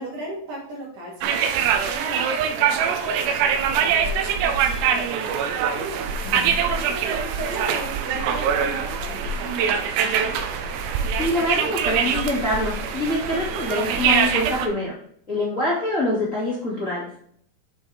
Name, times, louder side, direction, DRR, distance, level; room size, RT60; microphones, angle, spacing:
voice 1, 0.0-6.0 6.3-10.5, right 1 dB, 55° right, -9 dB, 4.4 m, -37 dB
sound 1, 1.2-14.7, right 7 dB, 90° right, 2.9 m, -23 dB
voice 2, 11.2-14.9 15.3-17.0, left 1 dB, 20° left, -5 dB, 2.4 m, -25 dB
8.2 x 7.7 x 3.6 m, 0.64 s
omnidirectional pair, 4.8 m